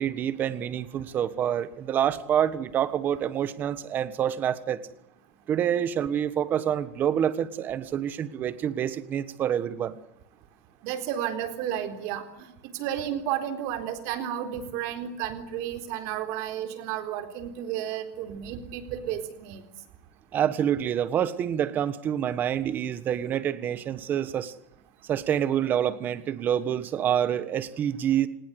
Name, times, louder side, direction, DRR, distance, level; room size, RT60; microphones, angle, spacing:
voice 1, 0.0-4.8 5.5-10.0 20.3-24.5 25.0-28.3, right 9 dB, 25° right, 14 dB, 1.4 m, -27 dB
voice 2, 10.8-19.6, right 10 dB, 50° right, 8 dB, 3.9 m, -32 dB
29.5 x 20.0 x 8.3 m, 0.79 s
supercardioid pair, 175°, 7 cm